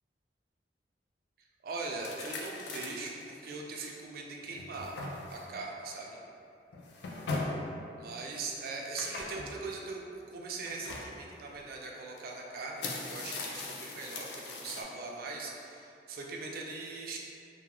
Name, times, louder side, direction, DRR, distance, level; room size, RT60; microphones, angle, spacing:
voice 1, 1.4-4.9 5.3-6.2 8.0-10.0 10.3-17.2, right 3 dB, 55° right, -1 dB, 0.3 m, -40 dB
sound 1, 2.0-3.2 3.8-3.9 4.4-5.6 6.7-7.7 9.0-9.6 10.6-11.1 12.2-12.3 12.6-14.8, left 3 dB, 70° left, 0.3 m, -39 dB
2.3 x 2.2 x 2.9 m, 2.6 s
head